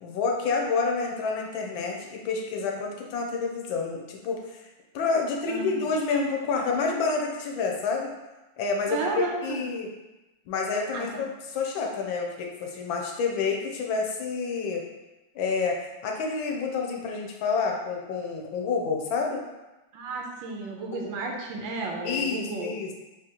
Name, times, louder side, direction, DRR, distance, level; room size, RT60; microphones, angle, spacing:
voice 1, 0.0-4.6 4.9-8.1 8.6-9.9 10.5-14.8 15.3-15.8 16.0-19.4 20.9-21.2 22.0-22.9, left 4 dB, 85° left, 1 dB, 1.4 m, -28 dB
voice 2, 5.5-5.9 8.9-9.6 10.9-11.2 19.9-22.7, right 3 dB, 80° right, 1 dB, 1.3 m, -33 dB
3.8 x 3.3 x 2.9 m, 1.1 s
omnidirectional pair, 2.1 m